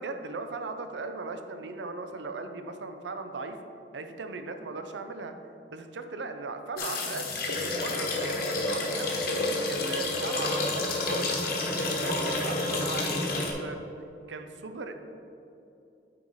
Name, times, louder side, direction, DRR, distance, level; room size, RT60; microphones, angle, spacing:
voice 1, 0.0-3.6 3.9-5.3 5.7-11.3 11.8-13.8 14.3-14.9, right 3 dB, 90° right, 7 dB, 0.6 m, -38 dB
sound 1, 6.8-13.5, left 2 dB, 60° left, 1.1 m, -29 dB
8.5 x 4.8 x 4.1 m, 2.8 s
head